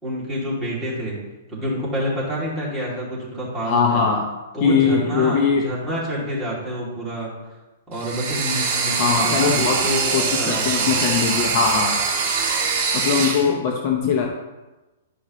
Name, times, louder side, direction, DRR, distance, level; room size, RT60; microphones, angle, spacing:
voice 1, 0.0-1.2 1.5-4.0 4.5-7.3 7.9-10.1 10.4-10.9, equal, 5° right, -8 dB, 2.7 m, -27 dB
voice 2, 3.7-4.3 4.6-5.7 9.0-9.9 10.1-12.0 12.9-14.3, left 6 dB, 35° left, 1 dB, 0.8 m, -21 dB
sound 1, 7.9-13.5, right 5 dB, 45° right, 2.2 m, -23 dB
11.5 x 5.3 x 3.1 m, 1.1 s
hypercardioid pair, 165°, 0 cm